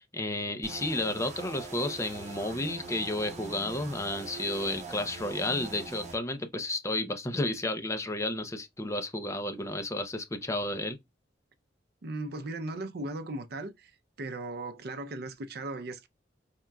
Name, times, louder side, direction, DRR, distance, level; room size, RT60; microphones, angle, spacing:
voice 1, 0.0-11.0, left 1 dB, 15° left, 0.6 m, -32 dB
sound 1, 0.6-6.2, right 3 dB, 40° right, 1.1 m, -43 dB
voice 2, 12.0-13.9 14.2-16.1, right 2 dB, 60° right, 0.6 m, -37 dB
4.2 x 3.6 x 2.3 m
head